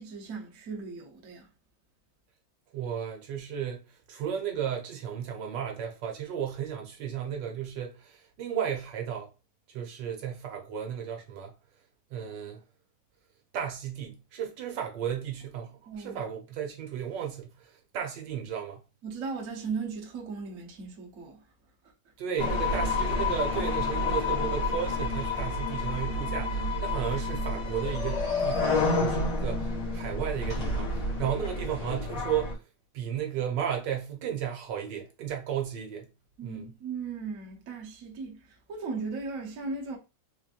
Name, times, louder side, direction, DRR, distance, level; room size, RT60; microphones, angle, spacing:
voice 1, 0.0-1.5 15.9-16.2 19.0-21.4 36.4-40.0, right 4 dB, 55° right, 1.1 m, -37 dB
voice 2, 2.7-9.3 9.7-11.5 12.1-12.6 13.5-18.8 22.2-32.6 32.9-36.1 36.4-36.6, right 9 dB, 75° right, 1.4 m, -34 dB
sound 1, 22.4-32.5, left 2 dB, 45° left, 1.7 m, -29 dB
4.3 x 3.0 x 2.4 m
omnidirectional pair, 2.0 m